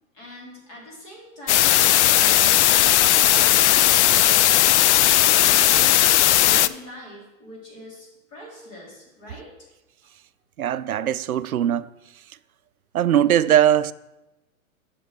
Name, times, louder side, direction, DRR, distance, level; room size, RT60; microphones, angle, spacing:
voice 1, 0.1-1.8 2.0-9.5 10.0-10.1, left 1 dB, 35° left, 3.7 m, -43 dB
sound 1, 1.5-6.7, left 13 dB, 55° left, 0.5 m, -17 dB
voice 2, 10.6-11.9 12.9-13.9, right 10 dB, 85° right, 0.5 m, -20 dB
7.6 x 6.3 x 5.9 m
hypercardioid pair, 115°, 42 cm